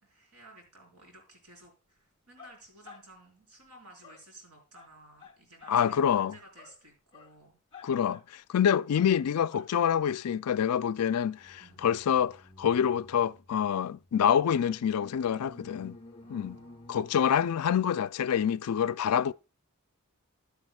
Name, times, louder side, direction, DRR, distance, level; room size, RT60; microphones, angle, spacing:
voice 1, 0.0-7.6 11.6-11.9 16.2-17.1, right 2 dB, 90° right, 4.4 m, -55 dB
sound 1, 2.4-3.1 4.0-4.3 4.7-4.9 5.2-5.8 6.1-6.3 6.6-6.8 7.1-7.3 7.7-8.2 8.9-9.1 9.5-9.7 10.7-17.5, left 3 dB, 25° left, 0.9 m, -53 dB
voice 2, 5.7-6.3 7.8-16.0 16.3-16.6 16.9-19.3, left 8 dB, 80° left, 0.4 m, -27 dB
11.5 x 10.5 x 2.3 m
head